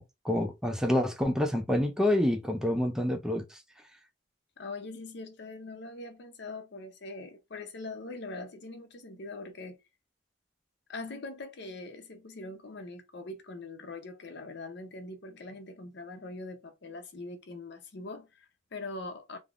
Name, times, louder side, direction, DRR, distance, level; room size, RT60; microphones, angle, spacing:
voice 1, 0.0-3.6, left 1 dB, 5° right, 0.4 m, -28 dB
voice 2, 4.6-9.8 10.9-19.4, left 2 dB, 65° left, 0.6 m, -42 dB
3.3 x 2.0 x 2.4 m
head